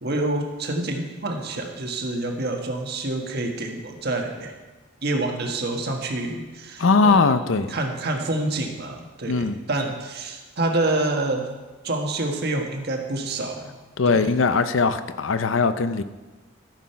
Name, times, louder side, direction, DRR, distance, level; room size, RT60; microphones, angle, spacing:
voice 1, 0.0-4.5 5.0-7.3 7.7-11.5 11.8-13.8 14.1-14.3, right 2 dB, 55° right, 3 dB, 1.4 m, -27 dB
voice 2, 6.8-7.8 9.3-9.6 14.0-16.0, left 4 dB, 80° left, 12 dB, 0.6 m, -20 dB
13.5 x 6.3 x 5.7 m, 1.2 s
head